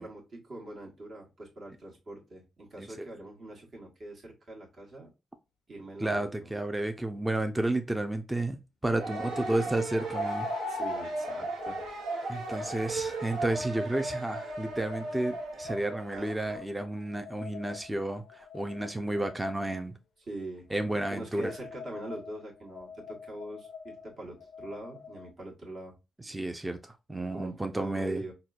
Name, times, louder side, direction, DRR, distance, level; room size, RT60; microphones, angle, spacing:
voice 1, 0.0-5.1 5.7-6.5 9.0-9.5 10.7-11.8 20.3-20.7 21.1-26.0 27.3-28.3, right 1 dB, 55° right, 1.4 m, -43 dB
voice 2, 6.0-10.8 12.3-19.9 20.7-21.5 26.2-28.2, right 1 dB, 15° right, 0.5 m, -32 dB
sound 1, 7.5-7.6 10.1-15.2 16.0-19.7 20.7-25.3, left 8 dB, 70° left, 0.4 m, -46 dB
sound 2, 8.9-16.6, right 2 dB, 90° right, 0.8 m, -36 dB
4.1 x 2.2 x 2.4 m
supercardioid pair, 60°, 0 cm